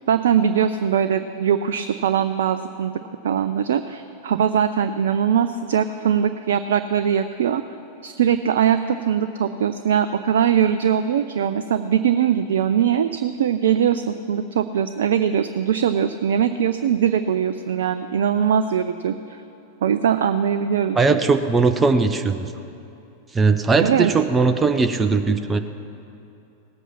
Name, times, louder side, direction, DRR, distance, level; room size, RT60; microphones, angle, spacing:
voice 1, 0.1-2.9 3.2-7.6 8.0-19.4 19.8-21.0 23.8-24.1, right 8 dB, 60° right, 10 dB, 0.4 m, -21 dB
voice 2, 20.9-22.5 23.3-25.6, right 4 dB, 15° right, 8 dB, 0.6 m, -19 dB
18.0 x 8.2 x 5.8 m, 2.8 s
figure-of-eight pair, 90°, 0 cm